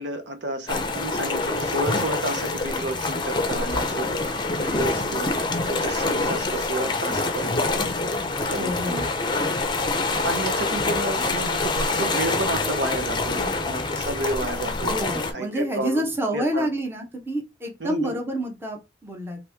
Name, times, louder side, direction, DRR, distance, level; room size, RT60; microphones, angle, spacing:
voice 1, 0.0-4.3 4.6-7.8 8.5-9.1 10.2-16.7 17.8-18.2, right 2 dB, 75° right, 0.8 m, -31 dB
sound 1, 0.7-15.3, left 3 dB, 25° left, 0.5 m, -26 dB
voice 2, 8.5-9.0 14.8-19.4, right 1 dB, 15° right, 0.7 m, -28 dB
2.9 x 2.6 x 3.4 m
head